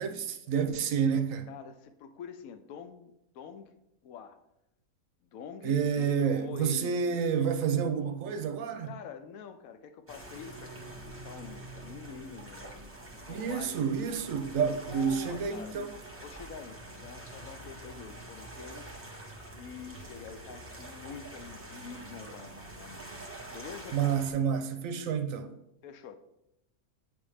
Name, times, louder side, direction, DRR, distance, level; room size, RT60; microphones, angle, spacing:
voice 1, 0.0-1.5 5.6-8.9 13.3-15.9 23.9-25.5, right 7 dB, 70° right, 0.9 m, -29 dB
voice 2, 1.5-3.8 4.0-4.4 5.2-7.3 8.8-13.9 14.9-15.8 16.2-19.0 19.6-24.2 25.8-26.2, left 7 dB, 75° left, 1.0 m, -46 dB
sound 1, 10.1-24.3, right 2 dB, 10° right, 0.8 m, -46 dB
8.9 x 3.4 x 3.3 m
omnidirectional pair, 1.5 m